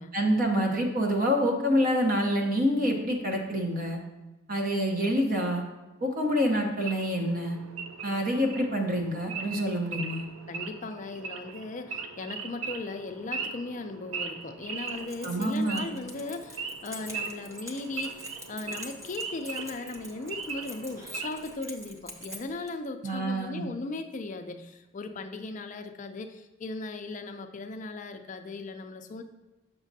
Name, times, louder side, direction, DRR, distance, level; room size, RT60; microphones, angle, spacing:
voice 1, 0.1-4.0 4.5-5.6 6.0-7.6 8.0-10.3 15.2-15.9 23.0-23.7, equal, 45° right, 2 dB, 0.9 m, -27 dB
Wild animals / Idling, 6.8-21.5, right 5 dB, 80° right, 0.6 m, -39 dB
voice 2, 10.5-29.2, left 3 dB, 35° left, 7 dB, 0.4 m, -38 dB
Keys jangling, 14.8-22.7, equal, 15° right, 0.6 m, -46 dB
7.2 x 6.1 x 2.7 m, 1.1 s
head